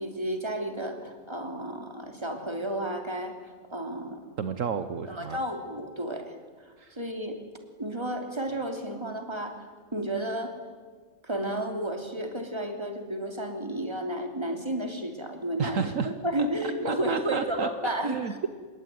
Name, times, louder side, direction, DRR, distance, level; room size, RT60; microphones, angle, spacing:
voice 1, 0.0-3.3 3.7-4.2 5.1-6.3 6.9-7.4 7.8-10.5 11.2-18.2, right 1 dB, 20° right, 4 dB, 3.1 m, -32 dB
voice 2, 4.4-5.4 6.8-7.0 15.6-16.1 16.8-17.7 18.0-18.5, right 6 dB, 65° right, 10 dB, 1.3 m, -31 dB
26.5 x 22.0 x 9.4 m, 1.5 s
omnidirectional pair, 1.5 m